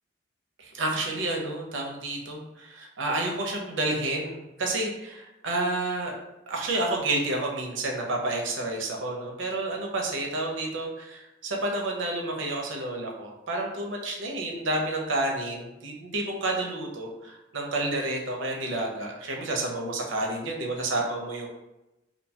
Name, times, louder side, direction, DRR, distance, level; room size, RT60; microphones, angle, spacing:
voice 1, 0.6-6.2 6.5-21.5, right 2 dB, 90° right, 0 dB, 0.6 m, -30 dB
2.6 x 2.2 x 2.7 m, 0.97 s
head